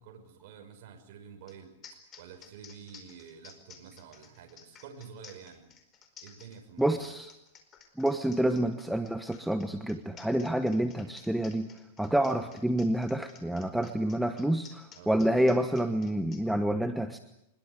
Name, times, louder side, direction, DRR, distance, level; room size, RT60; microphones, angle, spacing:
voice 1, 0.0-5.6 6.2-7.2 12.3-12.5 14.9-15.2, right 7 dB, 55° right, 3 dB, 5.7 m, -49 dB
sound 1, 1.5-1.6 1.8-16.4, left 7 dB, 25° left, 4.7 m, -53 dB
voice 2, 6.8-7.3 8.0-11.7 12.0-17.2, right 1 dB, ahead, 8 dB, 1.2 m, -28 dB
24.5 x 22.0 x 8.2 m, 0.81 s
supercardioid pair, 145°, 0 cm